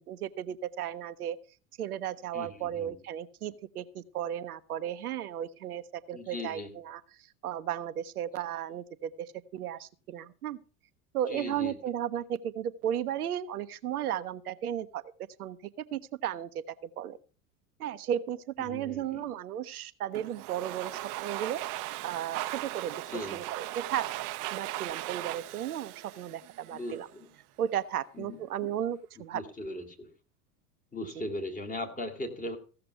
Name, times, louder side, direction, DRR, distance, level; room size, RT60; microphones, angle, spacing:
voice 1, 0.0-1.4 1.8-6.6 6.9-10.6 11.1-15.0 15.4-15.6 15.9-17.2 17.8-21.6 22.0-24.1 24.5-27.1 27.6-29.4 31.2-31.3, right 10 dB, 75° right, 12 dB, 0.8 m, -35 dB
voice 2, 2.3-3.0 6.1-6.7 11.3-11.7 18.6-19.3 23.1-23.4 26.7-27.3 28.1-28.7 29.2-30.1 30.9-32.6, left 2 dB, 20° left, 4 dB, 2.7 m, -39 dB
Domestic sounds home sounds, 20.1-27.0, right 17 dB, 45° right, 0.7 m, -38 dB
15.5 x 6.8 x 5.8 m, 0.38 s
figure-of-eight pair, 80°, 45 cm